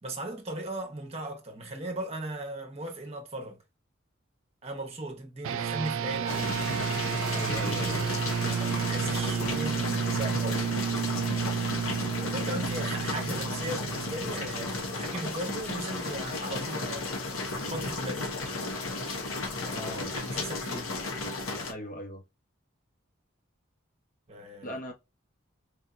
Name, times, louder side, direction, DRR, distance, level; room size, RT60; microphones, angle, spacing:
voice 1, 0.0-3.6 4.6-6.6 8.4-11.0 12.2-17.1 17.7-18.3 20.1-20.9 24.3-24.8, right 2 dB, 30° right, 1.0 m, -37 dB
sound 1, 5.4-15.2, right 7 dB, 85° right, 0.4 m, -31 dB
sound 2, 6.3-21.7, left 3 dB, 85° left, 1.0 m, -34 dB
voice 2, 7.3-8.0 19.7-20.2 21.7-22.2 24.6-24.9, equal, 40° left, 1.0 m, -38 dB
4.5 x 2.7 x 2.3 m
head